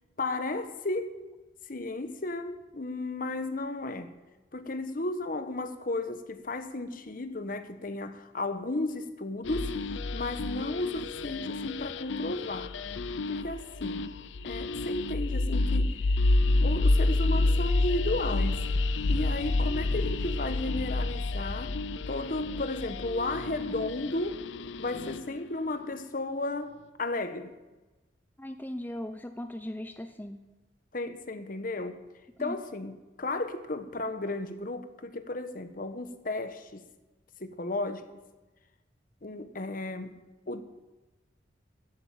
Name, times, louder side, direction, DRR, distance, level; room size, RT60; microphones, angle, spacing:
voice 1, 0.2-1.2 1.7-4.2 4.5-9.8 10.1-12.8 13.3-14.1 14.4-16.0 16.6-18.7 19.1-21.8 22.1-24.4 24.8-27.5 30.9-32.0 32.4-36.8 37.4-38.2 39.2-40.6, left 2 dB, 45° left, 1.1 m, -34 dB
sound 1, 9.4-25.4, left 2 dB, 75° left, 0.5 m, -29 dB
voice 2, 28.4-30.4 32.4-32.6, left 1 dB, 10° left, 0.6 m, -38 dB
14.5 x 8.4 x 9.1 m
head